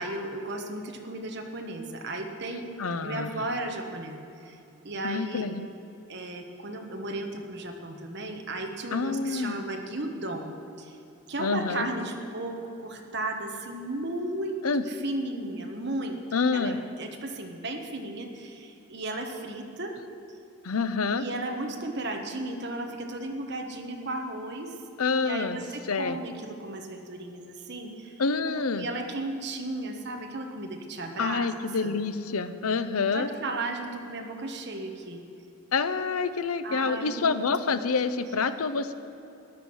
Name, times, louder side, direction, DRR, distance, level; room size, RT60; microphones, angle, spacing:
voice 1, 0.0-2.7 3.0-4.2 4.4-4.6 4.8-5.5 6.1-11.0 11.3-16.2 16.5-19.9 21.1-24.7 25.2-28.2 28.8-31.5 31.8-31.9 33.1-35.2 36.6-37.9, right 2 dB, 50° right, 3 dB, 1.4 m, -35 dB
voice 2, 2.8-3.5 5.0-5.7 8.9-9.6 11.4-11.9 14.6-14.8 16.3-16.8 20.6-21.2 25.0-25.6 25.9-26.2 28.2-28.9 31.2-33.3 35.7-38.9, left 4 dB, 90° left, 12 dB, 0.7 m, -27 dB
13.5 x 10.5 x 6.3 m, 2.9 s
head